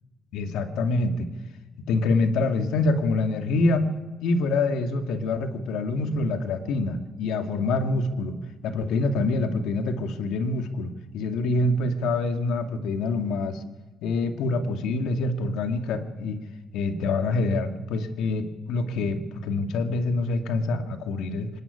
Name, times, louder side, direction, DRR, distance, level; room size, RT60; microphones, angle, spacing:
voice 1, 0.3-1.3 1.9-3.9 4.2-8.4 8.6-13.6 14.0-16.4 16.7-21.5, left 3 dB, 85° left, 7 dB, 2.2 m, -26 dB
25.5 x 20.5 x 9.8 m, 1.3 s
cardioid pair, 90°, 0 cm